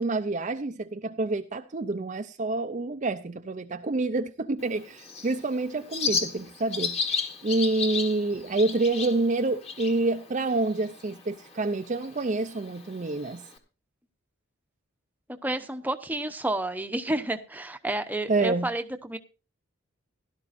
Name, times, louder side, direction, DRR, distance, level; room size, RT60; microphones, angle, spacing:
voice 1, 0.0-13.4 18.3-18.7, right 2 dB, 35° right, 0.5 m, -28 dB
Bird, 4.6-13.6, left 5 dB, 30° left, 1.5 m, -35 dB
voice 2, 15.4-19.2, right 1 dB, 10° right, 0.8 m, -30 dB
17.0 x 12.0 x 2.6 m
head